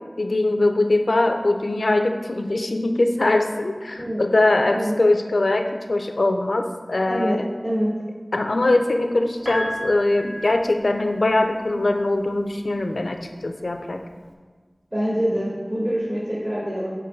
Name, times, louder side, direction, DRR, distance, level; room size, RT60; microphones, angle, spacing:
voice 1, 0.2-7.5 8.3-14.0, left 2 dB, 90° left, 6 dB, 0.4 m, -22 dB
voice 2, 4.6-4.9 7.1-7.9 14.9-16.9, equal, 35° right, -8 dB, 1.5 m, -25 dB
Piano, 9.5-11.5 12.7-12.8, equal, 15° right, 1.4 m, -33 dB
7.8 x 3.0 x 5.2 m, 1.5 s
wide cardioid pair, 40°, 0 cm